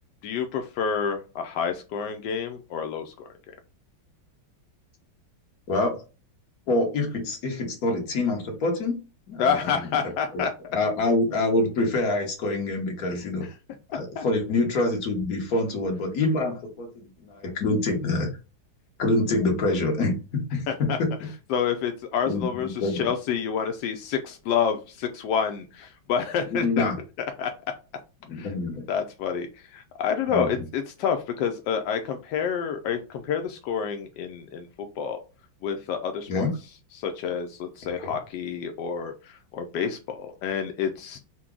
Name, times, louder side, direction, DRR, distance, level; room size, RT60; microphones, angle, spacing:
voice 1, 0.2-3.3 9.4-10.5 13.1-13.3 14.2-14.3 20.7-21.0 21.5-26.8 27.4-27.5 28.3-28.5 28.9-34.7 35.0-35.2 35.6-36.5 36.9-41.2, left 7 dB, 75° left, 5 dB, 1.0 m, -28 dB
voice 2, 6.7-9.0 9.3-9.7 10.3-10.4 10.7-13.5 13.9-18.3 19.0-21.3 22.3-23.0 26.5-27.0 28.3-28.9 30.3-30.6 36.3-36.5 38.0-38.1, left 2 dB, 50° left, 2 dB, 1.5 m, -26 dB
5.8 x 2.2 x 3.7 m, 0.32 s
omnidirectional pair, 2.2 m